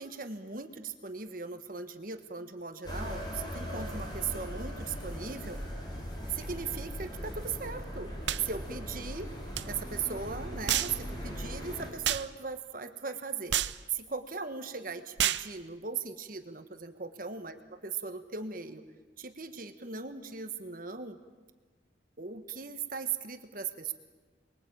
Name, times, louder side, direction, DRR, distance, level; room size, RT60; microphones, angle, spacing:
voice 1, 0.0-5.6 6.3-8.1 8.4-9.3 9.6-13.6 13.9-17.5 17.8-18.8 19.2-21.2 22.2-23.9, right 5 dB, 45° right, 8 dB, 1.5 m, -38 dB
sound 1, 2.9-11.9, equal, 25° left, 5.4 m, -39 dB
sound 2, 8.3-8.4 9.5-9.7 10.7-11.0 12.0-12.3 13.5-13.8 15.2-15.5, right 11 dB, 70° right, 0.8 m, -29 dB
29.5 x 22.0 x 8.7 m, 1.3 s
head